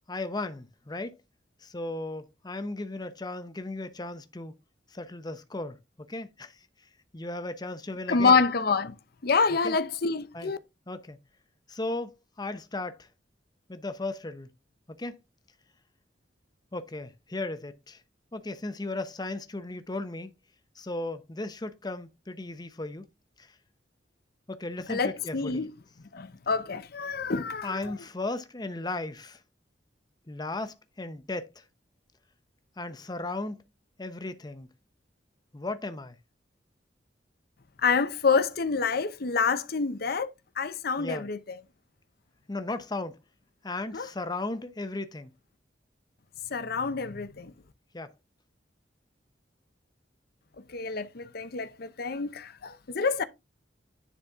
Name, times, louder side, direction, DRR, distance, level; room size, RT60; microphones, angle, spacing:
voice 1, 0.1-1.2 1.6-4.6 4.9-6.6 7.1-8.4 9.6-9.8 10.3-10.5 10.9-11.2 11.7-13.1 13.7-14.5 14.9-15.2 16.7-18.0 18.3-20.3 20.8-23.0 23.4-23.5 24.5-25.6 27.6-29.4 30.3-31.6 32.8-33.6 34.0-34.7 35.5-36.1 41.0-41.3 42.5-43.2 43.6-45.3 47.9-48.1, left 2 dB, 25° left, 0.8 m, -36 dB
voice 2, 8.1-9.0 9.2-10.6 24.9-25.7 26.1-27.8 37.8-40.3 40.6-41.4 43.9-44.1 46.5-47.5 50.7-53.2, left 5 dB, 55° left, 0.7 m, -27 dB
10.0 x 4.1 x 3.5 m
head